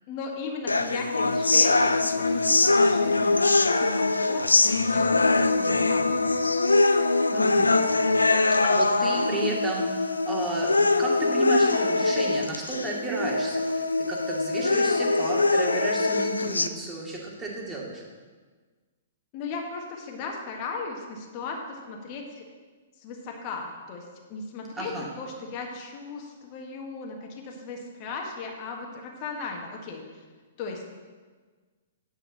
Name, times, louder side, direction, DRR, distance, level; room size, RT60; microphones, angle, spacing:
voice 1, 0.1-6.3 19.3-22.4 23.0-30.0 30.6-30.8, left 4 dB, 35° left, 0 dB, 1.6 m, -37 dB
sound 1, 0.7-16.7, left 3 dB, 80° left, 0.5 m, -23 dB
voice 2, 7.3-7.7 8.6-18.0 24.8-25.1, right 2 dB, 15° right, -2 dB, 2.2 m, -33 dB
9.7 x 5.8 x 7.1 m, 1.4 s
figure-of-eight pair, 115°, 0 cm